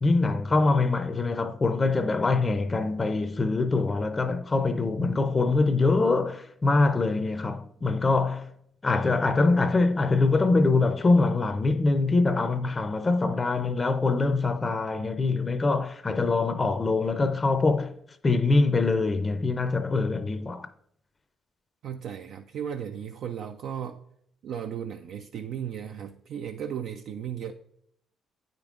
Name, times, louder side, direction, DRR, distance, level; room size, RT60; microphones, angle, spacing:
voice 1, 0.0-8.5 8.8-17.9 18.2-20.7, left 3 dB, 30° left, 0.5 m, -24 dB
voice 2, 21.8-24.0 24.4-27.5, right 8 dB, 70° right, 0.3 m, -35 dB
8.9 x 5.2 x 2.4 m
supercardioid pair, 70°, 0 cm